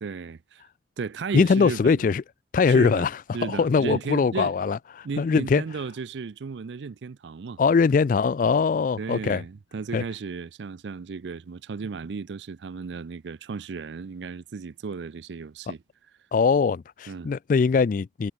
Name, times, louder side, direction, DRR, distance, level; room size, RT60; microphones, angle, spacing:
voice 1, 0.0-0.6 1.0-2.1 2.7-3.1 3.3-4.5 5.0-7.6 9.0-15.8 17.1-17.3, right 5 dB, 85° right, 0.5 m, -34 dB
voice 2, 1.3-2.2 2.5-5.6 7.6-9.4 9.9-10.0 16.3-18.3, left 5 dB, 50° left, 0.3 m, -22 dB
head